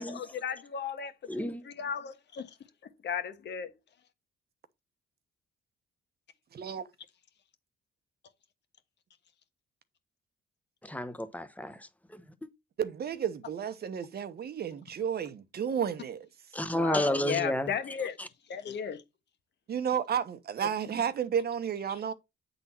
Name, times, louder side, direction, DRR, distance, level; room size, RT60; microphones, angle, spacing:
voice 1, 0.0-1.1 1.4-2.5 3.0-3.7 16.7-18.1 18.5-19.0, left 7 dB, 60° left, 1.3 m, -35 dB
voice 2, 1.3-1.6 10.8-12.2 16.5-17.7 18.2-18.3, left 1 dB, 5° left, 1.0 m, -31 dB
voice 3, 6.5-6.9 12.8-16.3 19.7-22.1, right 8 dB, 50° right, 1.0 m, -32 dB
8.8 x 4.0 x 4.3 m
cardioid pair, 90°, 20 cm